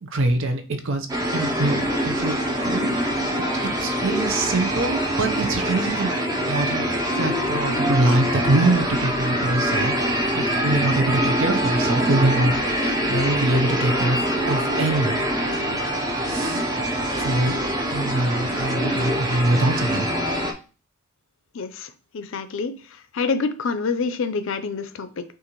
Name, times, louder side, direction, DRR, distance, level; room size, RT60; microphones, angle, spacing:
voice 1, 0.0-1.1 1.3-1.8 2.0-2.4 2.6-3.2 3.8-6.1 6.5-15.3 16.3-16.6 17.2-17.6 17.9-20.1, right 2 dB, 60° right, 6 dB, 0.7 m, -24 dB
sound 1, 1.1-20.5, equal, 15° right, 0.7 m, -24 dB
voice 2, 21.5-22.8 23.1-25.2, left 4 dB, 60° left, 10 dB, 0.5 m, -27 dB
6.5 x 2.5 x 2.9 m, 0.35 s
head